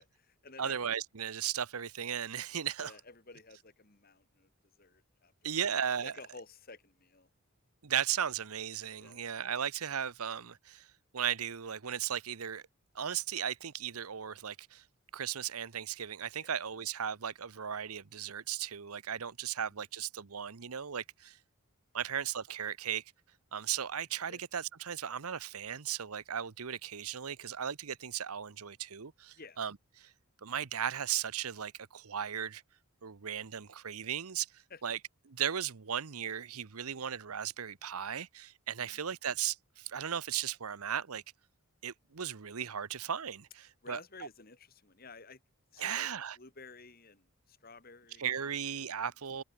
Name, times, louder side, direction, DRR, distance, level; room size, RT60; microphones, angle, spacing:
voice 1, 0.0-0.8 2.8-4.5 4.8-5.6 6.0-7.3 9.0-9.3 16.4-16.5 21.9-22.0 24.3-24.4 29.4-29.6 34.7-34.8 38.8-39.0 43.8-45.4 45.7-46.1 46.4-48.3, left 3 dB, 40° left, 2.2 m, -53 dB
voice 2, 0.6-2.9 5.4-6.1 7.8-10.9 11.1-12.6 12.9-14.8 15.1-21.4 21.9-23.0 23.5-30.1 30.4-32.6 33.0-35.0 35.3-41.2 41.8-44.3 45.8-46.4 48.2-49.4, right 8 dB, 85° right, 0.9 m, -36 dB
head